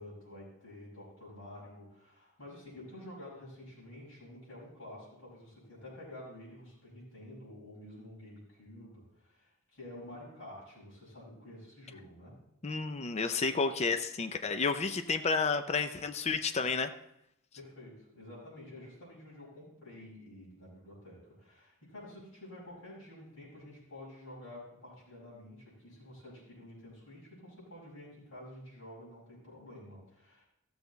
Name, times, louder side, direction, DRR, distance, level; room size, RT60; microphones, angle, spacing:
voice 1, 0.0-12.4 17.5-30.4, left 1 dB, 70° left, -7 dB, 5.1 m, -50 dB
voice 2, 12.6-16.9, left 4 dB, 30° left, 8 dB, 0.5 m, -31 dB
14.5 x 7.0 x 4.0 m, 0.79 s
head